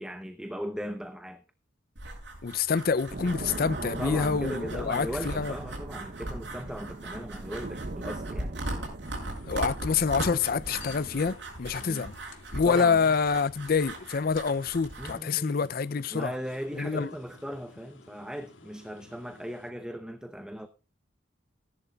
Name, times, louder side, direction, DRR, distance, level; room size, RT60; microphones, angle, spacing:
voice 1, 0.0-1.4 4.0-8.6 11.8-12.1 12.7-13.1 15.0-15.6 16.1-20.7, equal, 5° right, 0.7 m, -38 dB
sound 1, 2.0-15.2, right 1 dB, 60° right, 6.5 m, -40 dB
voice 2, 2.4-5.5 9.4-12.1 12.5-16.3 16.8-17.1, left 5 dB, 50° left, 0.5 m, -27 dB
sound 2, 3.1-11.4, right 2 dB, 45° right, 0.7 m, -40 dB
sound 3, 9.0-19.7, left 4 dB, 75° left, 1.9 m, -54 dB
17.5 x 11.0 x 2.3 m
head